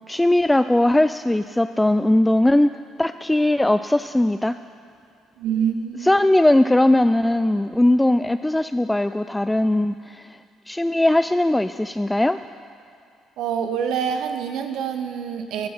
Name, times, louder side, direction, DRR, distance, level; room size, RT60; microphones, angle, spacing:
voice 1, 0.1-2.7 3.0-4.6 6.0-10.4 10.7-12.4, left 1 dB, 10° left, 11 dB, 0.3 m, -19 dB
voice 2, 5.4-6.1 13.4-15.7, right 7 dB, 60° right, 7 dB, 0.9 m, -26 dB
20.0 x 7.6 x 5.6 m, 2.4 s
figure-of-eight pair, 45°, 0 cm